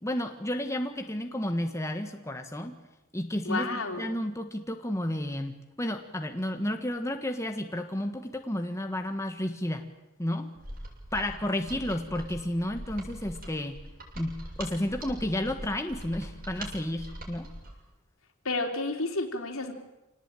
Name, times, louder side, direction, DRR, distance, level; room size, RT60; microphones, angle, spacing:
voice 1, 0.0-2.7 3.1-9.9 10.2-10.5 11.1-13.8 14.2-17.5, left 1 dB, 15° left, 5 dB, 1.5 m, -32 dB
voice 2, 3.5-4.0 18.5-19.7, left 2 dB, 70° left, 4 dB, 3.7 m, -30 dB
Mechanisms, 10.6-17.8, right 1 dB, 45° right, 7.4 m, -42 dB
27.0 x 19.0 x 9.0 m, 0.99 s
head